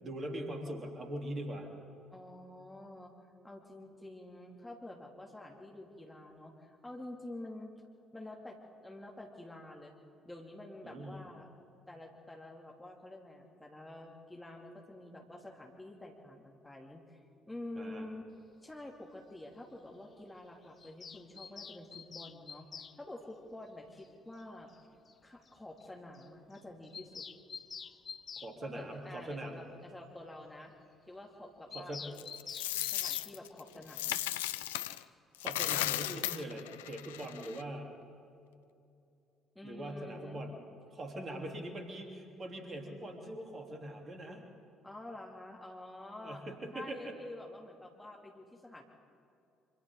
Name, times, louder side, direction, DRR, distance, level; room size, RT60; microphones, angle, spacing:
voice 1, 0.0-1.7 10.8-11.2 17.8-18.0 28.4-29.5 31.7-32.1 35.4-37.9 39.6-40.5 40.9-44.5 46.2-47.1, right 1 dB, 35° right, 2 dB, 3.3 m, -42 dB
voice 2, 2.1-7.7 8.1-9.9 10.2-11.5 11.9-18.2 18.6-24.7 25.2-27.3 28.6-30.7 31.1-32.2 32.9-34.2 39.5-40.4 44.8-46.4 46.7-48.8, left 1 dB, 10° left, 0 dB, 2.5 m, -48 dB
Bird vocalization bird call bird song, 20.8-22.9 24.4-24.5 24.7-24.8 25.1-25.2 25.5-25.6 25.8-25.9 26.1-26.3 26.5-28.5 31.7-33.3, left 6 dB, 40° left, 0.7 m, -46 dB
Coin (dropping), 32.2-35.0 35.3-37.6, left 14 dB, 70° left, 0.4 m, -36 dB
27.0 x 25.5 x 3.8 m, 2.7 s
figure-of-eight pair, 50°, 0 cm